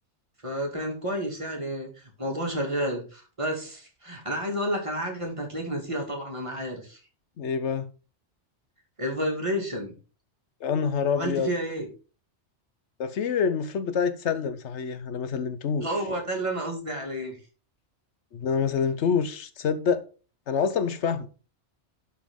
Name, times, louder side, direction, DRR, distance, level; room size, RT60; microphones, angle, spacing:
voice 1, 0.4-7.0 9.0-9.9 11.2-11.9 15.8-17.4, equal, 25° right, 2.3 m, -30 dB
voice 2, 7.4-7.9 10.6-11.5 13.0-15.9 18.3-20.0 20.5-21.3, left 6 dB, 75° left, 1.1 m, -26 dB
12.0 x 4.4 x 3.7 m
omnidirectional pair, 1.2 m